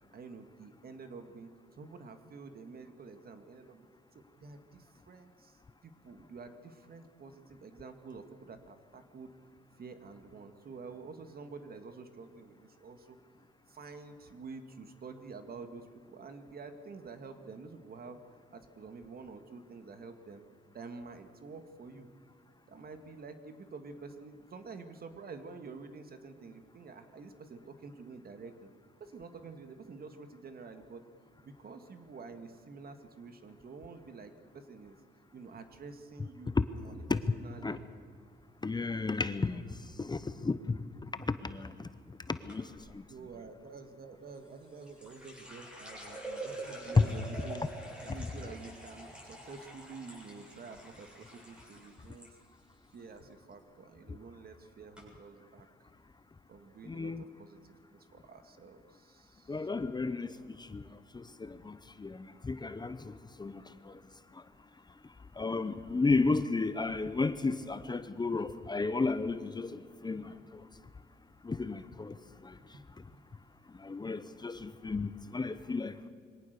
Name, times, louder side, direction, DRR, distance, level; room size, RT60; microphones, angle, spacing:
voice 1, 0.1-1.5 1.8-3.9 4.1-9.3 9.8-13.2 13.7-18.2 18.5-20.4 20.7-22.1 22.7-28.7 29.0-31.0 31.4-35.0 35.3-36.5 36.8-37.8 43.1-47.7 48.0-52.3 52.9-55.7 56.5-59.7 70.1-70.3 72.7-72.9 73.8-74.1, right 4 dB, 50° right, 8 dB, 2.0 m, -49 dB
voice 2, 38.6-40.8 41.1-41.9 42.3-43.0 47.0-47.1 54.1-54.2 56.8-57.2 59.5-64.0 64.3-64.4 65.3-70.6 71.4-72.2 72.4-72.8 73.7-76.0, left 3 dB, 20° left, 12 dB, 0.9 m, -33 dB
sound 1, 42.5-42.9 44.3-52.3 52.6-53.2 53.5-53.9 54.5-54.6 54.9-55.0, right 1 dB, 5° right, 7.7 m, -46 dB
23.5 x 17.5 x 6.8 m, 2.3 s
cardioid pair, 90°, 20 cm